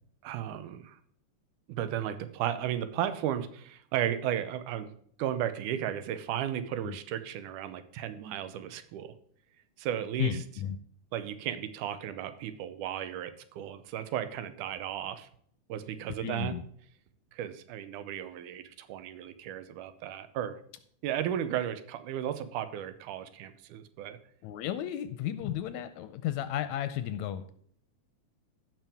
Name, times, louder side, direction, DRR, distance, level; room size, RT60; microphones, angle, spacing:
voice 1, 0.2-1.0 1.7-4.9 5.2-9.1 9.8-10.4 11.1-15.3 15.7-16.5 17.3-20.6 21.0-24.2, right 10 dB, 85° right, 11 dB, 2.3 m, -34 dB
voice 2, 10.2-10.8 16.2-16.6 24.4-27.5, left 11 dB, 80° left, 12 dB, 1.7 m, -33 dB
15.5 x 5.9 x 3.5 m, 0.62 s
omnidirectional pair, 3.6 m